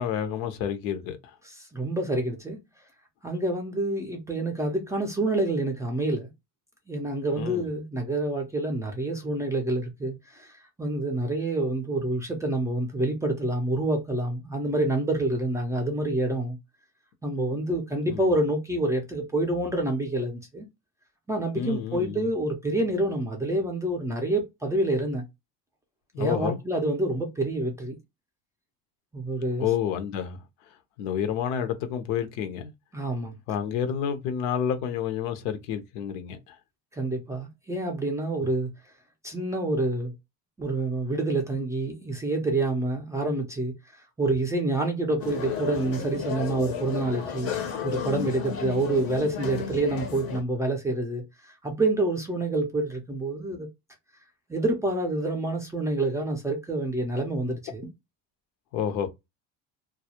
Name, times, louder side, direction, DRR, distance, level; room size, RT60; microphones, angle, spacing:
voice 1, 0.0-1.3 7.4-7.6 18.0-18.2 21.6-22.3 26.1-26.6 29.6-30.4 31.0-32.7 33.5-36.6 58.7-59.1, left 8 dB, 80° left, 0.7 m, -29 dB
voice 2, 1.6-2.6 3.2-6.3 6.9-16.6 17.2-20.7 21.3-25.2 26.2-28.0 29.1-29.7 32.9-33.3 36.9-38.7 39.2-40.1 40.6-43.7 44.2-47.5 47.8-53.7 54.5-57.9, right 2 dB, 10° right, 0.4 m, -27 dB
sound 1, 45.2-50.4, left 6 dB, 40° left, 0.6 m, -33 dB
2.3 x 2.0 x 2.8 m
cardioid pair, 135°, 37 cm